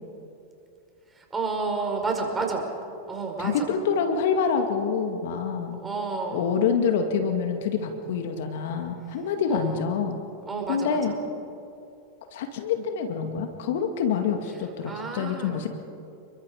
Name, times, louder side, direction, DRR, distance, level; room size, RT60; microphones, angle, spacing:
voice 1, 1.1-2.7 3.1-3.7 5.8-6.6 9.5-9.8 10.5-11.0 14.9-15.6, right 3 dB, 15° right, 1 dB, 5.2 m, -30 dB
voice 2, 3.4-5.8 6.3-10.2 10.7-11.1 12.3-15.7, left 6 dB, 65° left, 6 dB, 2.1 m, -26 dB
29.5 x 22.5 x 5.1 m, 2.6 s
hypercardioid pair, 95°, 0 cm